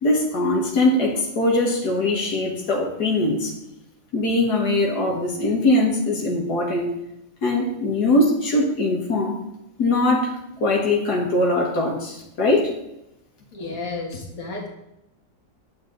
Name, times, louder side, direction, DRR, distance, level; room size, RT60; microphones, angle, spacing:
voice 1, 0.0-3.5 4.1-6.9 7.4-9.3 9.8-10.3 10.6-12.7, left 2 dB, 85° left, -1 dB, 2.0 m, -21 dB
voice 2, 13.5-14.7, left 3 dB, 60° left, 0 dB, 2.0 m, -32 dB
9.5 x 7.0 x 3.9 m, 0.86 s
omnidirectional pair, 1.7 m